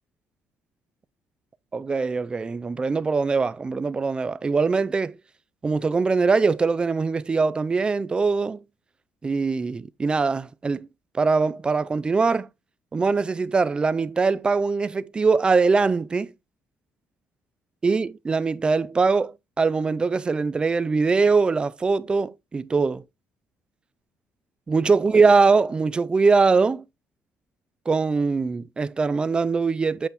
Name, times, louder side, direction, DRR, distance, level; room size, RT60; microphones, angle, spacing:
voice 1, 1.7-5.2 5.6-8.6 9.2-10.9 11.1-12.5 12.9-16.3 17.8-23.0 24.7-26.8 27.9-30.1, right 4 dB, 20° right, 0.4 m, -22 dB
8.2 x 5.5 x 2.9 m
cardioid pair, 145°, 5 cm